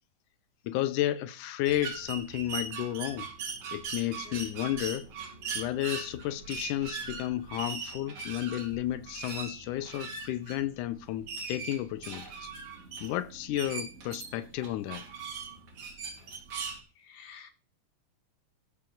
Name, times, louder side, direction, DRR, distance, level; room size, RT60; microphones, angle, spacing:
voice 1, 0.7-3.3 3.7-5.1 5.6-12.5 13.0-15.0, left 13 dB, 80° left, 2.2 m, -32 dB
sound 1, 1.6-16.8, right 5 dB, 65° right, 4.2 m, -40 dB
voice 2, 4.0-4.5 17.0-17.5, left 7 dB, 60° left, 2.2 m, -51 dB
14.5 x 5.0 x 7.0 m
omnidirectional pair, 3.5 m